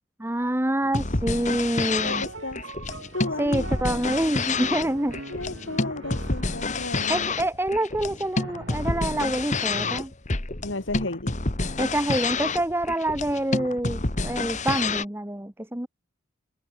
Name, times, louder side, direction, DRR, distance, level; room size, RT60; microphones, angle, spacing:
voice 1, 0.2-2.2 3.4-5.2 7.1-10.1 11.8-15.9, right 1 dB, 10° right, 1.0 m, -26 dB
sound 1, 0.8-15.1, left 3 dB, 35° left, 1.5 m, -28 dB
sound 2, 1.7-7.2 8.4-9.4 9.7-10.0, right 2 dB, 60° right, 2.2 m, -42 dB
voice 2, 1.8-2.6 3.1-3.7 5.3-7.3 10.6-11.3, left 2 dB, 65° left, 1.9 m, -33 dB
head